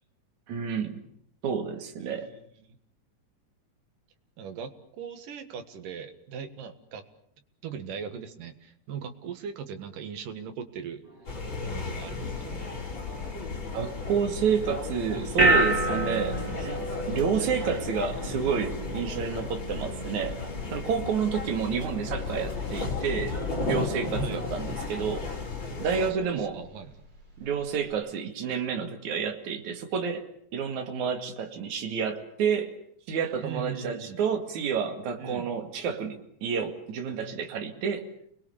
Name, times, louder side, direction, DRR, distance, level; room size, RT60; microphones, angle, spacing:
voice 1, 0.5-1.0 1.4-2.3 13.7-20.4 20.7-23.4 23.6-25.3 25.8-26.6 27.4-30.3 30.5-32.7 33.1-38.1, right 6 dB, 65° right, 5 dB, 3.5 m, -29 dB
voice 2, 2.0-2.8 4.4-7.0 7.6-11.0 11.6-12.7 24.2-24.4 25.8-26.9 33.4-34.2 35.2-35.5, right 7 dB, 85° right, 8 dB, 3.4 m, -39 dB
sound 1, 11.0-25.2, left 2 dB, 15° right, 7.5 m, -53 dB
sound 2, 11.3-26.1, left 3 dB, 35° left, 5.7 m, -34 dB
sound 3, 14.4-27.9, right 2 dB, 35° right, 4.7 m, -32 dB
29.5 x 21.5 x 7.1 m, 0.68 s
omnidirectional pair, 3.7 m